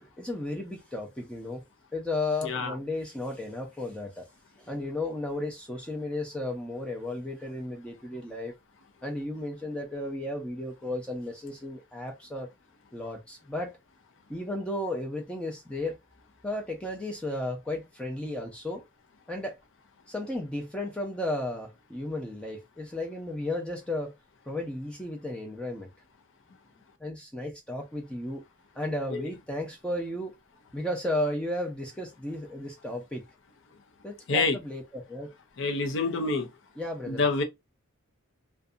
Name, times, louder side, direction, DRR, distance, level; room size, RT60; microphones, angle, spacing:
voice 1, 0.0-1.6 1.9-4.2 4.6-8.5 9.0-12.5 12.9-13.7 14.3-15.9 16.4-18.8 19.3-19.5 20.1-24.1 24.5-25.9 27.0-28.4 28.8-30.3 30.7-33.2 34.0-35.3 36.8-37.2, left 1 dB, 5° left, 0.5 m, -34 dB
voice 2, 35.6-36.5 37.1-37.4, left 3 dB, 60° left, 0.6 m, -26 dB
2.6 x 2.2 x 2.4 m
head